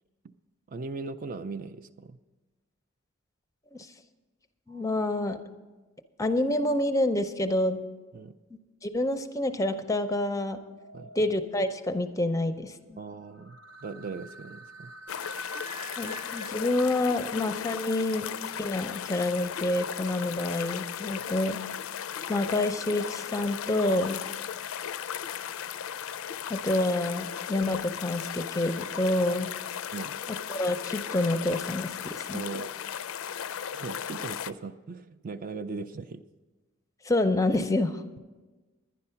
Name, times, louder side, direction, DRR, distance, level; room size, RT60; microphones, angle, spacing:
voice 1, 0.7-2.2 8.1-8.3 10.9-11.1 13.0-14.9 29.9-30.2 32.3-32.7 33.7-36.2, right 4 dB, 40° right, 9 dB, 0.3 m, -39 dB
voice 2, 4.7-5.4 6.2-7.8 8.8-10.6 11.2-13.0 16.0-21.6 22.3-24.2 26.5-29.5 30.3-32.4 37.0-38.0, left 1 dB, 15° left, 9 dB, 0.5 m, -28 dB
sound 1, 4.7-5.3 9.7-11.7 13.3-16.5, right 2 dB, 80° right, 0.8 m, -46 dB
sound 2, 15.1-34.5, left 9 dB, 85° left, 0.4 m, -36 dB
10.5 x 10.5 x 5.6 m, 1.3 s
head